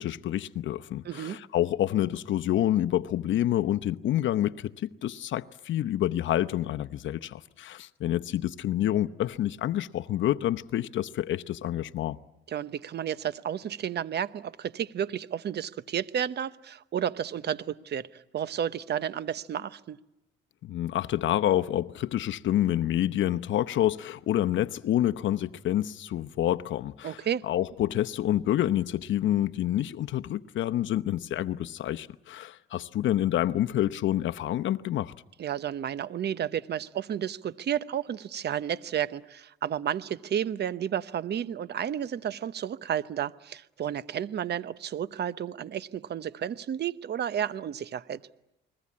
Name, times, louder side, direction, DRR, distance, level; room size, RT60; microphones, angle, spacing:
voice 1, 0.0-12.2 20.6-35.1, left 12 dB, 70° left, 0.9 m, -28 dB
voice 2, 1.0-1.4 12.5-20.0 27.0-27.4 35.4-48.2, right 9 dB, 55° right, 0.9 m, -32 dB
29.5 x 21.0 x 8.6 m
cardioid pair, 90°, 20 cm